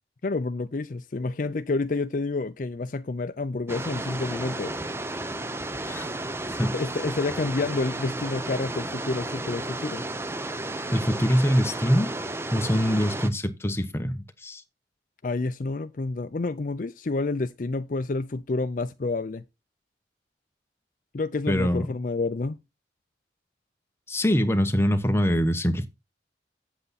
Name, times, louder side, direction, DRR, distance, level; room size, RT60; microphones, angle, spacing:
voice 1, 0.2-4.8 6.7-10.0 15.2-19.4 21.1-22.6, left 3 dB, 45° left, 0.5 m, -29 dB
sound 1, 3.7-13.3, right 2 dB, 15° right, 0.6 m, -33 dB
voice 2, 10.9-12.1 12.5-14.6 21.5-22.0 24.1-25.9, equal, 15° left, 0.9 m, -24 dB
8.1 x 7.9 x 4.1 m
head